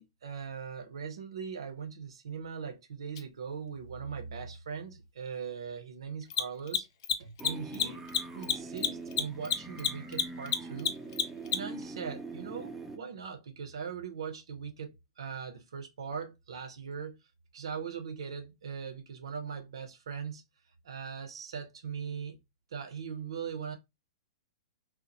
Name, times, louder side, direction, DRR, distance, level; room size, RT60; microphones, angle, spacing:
voice 1, 0.0-6.9 7.2-8.1 8.3-10.9 11.5-17.2 17.5-20.4 20.8-22.4 22.7-23.8, right 6 dB, 70° right, 0.5 m, -40 dB
Mechanisms, 3.1-3.2 6.2-11.8, left 8 dB, 50° left, 0.4 m, -29 dB
sound 1, 7.4-13.0, right 3 dB, 5° right, 0.4 m, -43 dB
2.8 x 2.0 x 2.7 m
hypercardioid pair, 110°, 3 cm